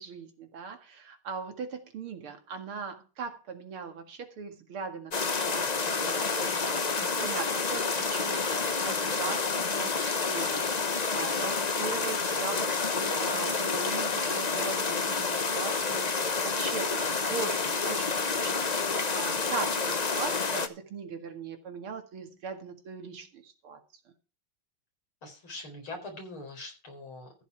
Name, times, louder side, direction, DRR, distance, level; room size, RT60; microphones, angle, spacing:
voice 1, 0.0-23.8, right 5 dB, 80° right, 2.8 m, -40 dB
sound 1, 5.1-20.7, left 4 dB, 40° left, 0.6 m, -29 dB
voice 2, 25.2-27.4, left 2 dB, 75° left, 5.1 m, -43 dB
14.5 x 8.1 x 4.7 m
omnidirectional pair, 2.3 m